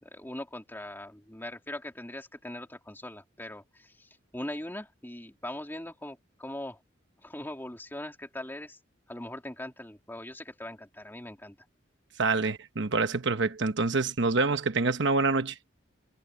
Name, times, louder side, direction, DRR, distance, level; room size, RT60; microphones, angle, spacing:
voice 1, 0.0-6.8 7.2-8.8 9.1-11.6, left 1 dB, 10° left, 3.2 m, -41 dB
voice 2, 12.2-15.5, right 3 dB, 65° right, 1.1 m, -26 dB
head